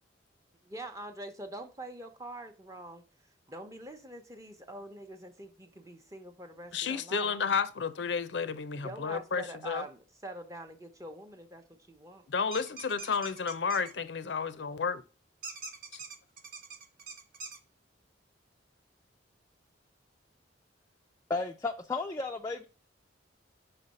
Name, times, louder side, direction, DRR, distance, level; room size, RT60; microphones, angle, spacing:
voice 1, 0.6-3.0 3.5-7.3 8.7-12.3, right 1 dB, 15° right, 0.8 m, -45 dB
voice 2, 6.7-9.8 12.3-15.0, left 5 dB, 65° left, 0.6 m, -32 dB
sound 1, 12.5-13.9 15.4-17.6, right 4 dB, 50° right, 1.0 m, -44 dB
voice 3, 21.3-22.7, left 3 dB, 15° left, 0.4 m, -33 dB
5.5 x 4.1 x 5.3 m
head